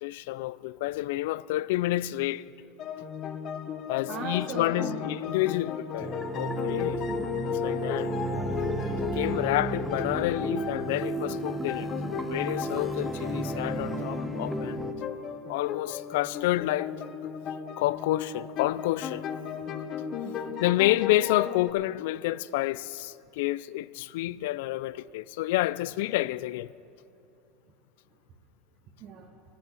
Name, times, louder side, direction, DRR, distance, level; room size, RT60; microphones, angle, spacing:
voice 1, 0.0-2.5 3.9-7.0 7.6-8.1 9.1-11.9 12.3-14.8 15.5-16.9 17.8-19.3 20.6-26.7, left 16 dB, 75° left, 0.3 m, -29 dB
sound 1, 2.8-21.7, left 8 dB, 40° left, 0.8 m, -35 dB
voice 2, 4.1-5.1 7.1-7.5 8.4-8.5 14.0-14.3 20.2-20.6 29.0-29.3, right 5 dB, 45° right, 1.3 m, -39 dB
sound 2, 6.0-14.9, right 2 dB, 10° right, 0.9 m, -33 dB
11.0 x 10.5 x 8.3 m
supercardioid pair, 125°, 0 cm